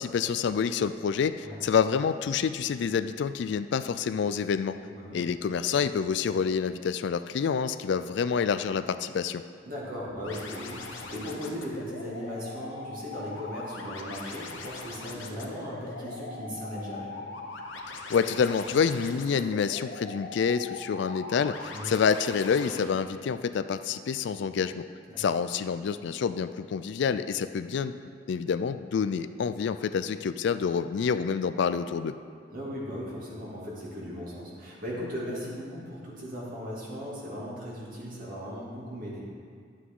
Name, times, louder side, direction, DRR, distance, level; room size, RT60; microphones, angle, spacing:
voice 1, 0.0-4.8 5.1-9.4 18.1-24.8 25.2-27.9 28.3-32.2, left 6 dB, 65° left, 12 dB, 0.3 m, -27 dB
voice 2, 9.7-17.2 21.7-21.9 25.1-25.3 32.5-39.3, equal, 50° right, -5 dB, 2.5 m, -38 dB
sound 1, 10.2-22.8, left 3 dB, 90° left, 1.0 m, -41 dB
11.5 x 8.4 x 3.8 m, 2.2 s
head